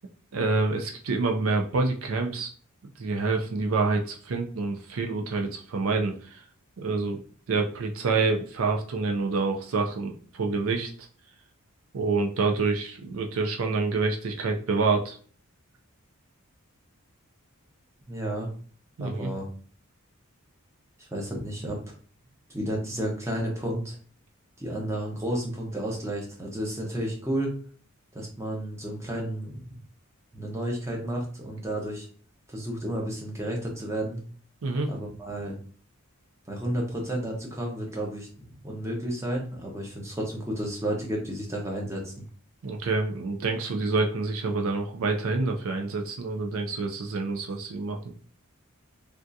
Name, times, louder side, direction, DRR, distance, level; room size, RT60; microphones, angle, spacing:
voice 1, 0.3-2.5 3.0-6.4 6.8-7.2 7.5-10.9 11.9-15.2 19.0-19.3 34.6-34.9 42.6-48.0, right 3 dB, 70° right, 3 dB, 0.4 m, -27 dB
voice 2, 18.1-18.5 19.0-19.5 21.1-21.8 22.5-24.0 24.6-27.5 28.1-29.7 30.3-32.1 32.5-34.2 34.9-35.6 36.5-42.1, right 1 dB, 15° right, -1 dB, 0.8 m, -32 dB
3.4 x 2.4 x 2.6 m, 0.44 s
head